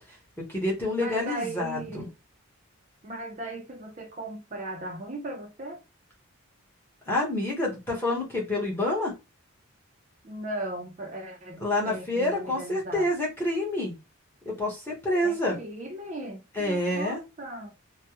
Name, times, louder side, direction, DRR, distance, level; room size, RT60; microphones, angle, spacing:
voice 1, 0.4-2.1 7.1-9.1 11.6-13.9 14.4-15.6 16.6-17.2, left 1 dB, 10° left, 1.0 m, -28 dB
voice 2, 1.0-2.1 3.0-5.8 10.2-13.1 15.2-17.7, right 1 dB, 35° right, 0.5 m, -37 dB
3.2 x 2.2 x 2.9 m
head